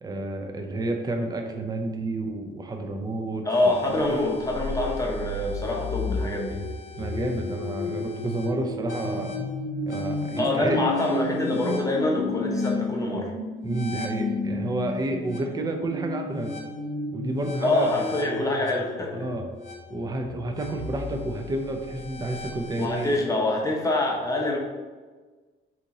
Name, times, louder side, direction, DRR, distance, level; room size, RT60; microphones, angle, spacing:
voice 1, 0.0-4.2 7.0-9.5 9.8-10.9 13.6-16.6 17.1-17.9 19.1-19.5 19.9-23.2, right 2 dB, 20° right, 3 dB, 0.4 m, -30 dB
voice 2, 3.4-6.6 10.4-13.3 17.6-19.2 22.8-24.6, left 2 dB, 15° left, -1 dB, 0.7 m, -25 dB
sound 1, 3.5-23.2, left 2 dB, 70° left, 0.7 m, -33 dB
2.9 x 2.6 x 3.7 m, 1.4 s
cardioid pair, 90°, 20 cm